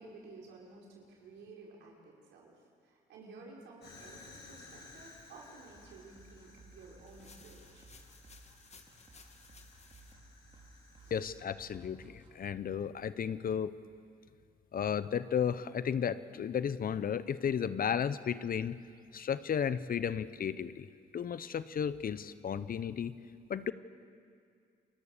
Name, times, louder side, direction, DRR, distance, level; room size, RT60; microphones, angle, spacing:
voice 1, 0.0-2.6 2.8-7.9 11.0-11.1, right 3 dB, 80° right, -2 dB, 5.7 m, -53 dB
Fire, 3.8-11.4, left 3 dB, 70° left, 5.6 m, -57 dB
sound 1, 5.7-12.4, right 2 dB, 25° right, 3.5 m, -59 dB
sound 2, 7.1-10.1, left 4 dB, 35° left, 2.3 m, -58 dB
voice 2, 11.1-13.7 14.7-18.8 19.1-20.9 21.1-23.1 23.5-23.7, left 8 dB, 55° left, 14 dB, 1.0 m, -34 dB
29.5 x 22.0 x 6.9 m, 2.3 s
supercardioid pair, 60°, 18 cm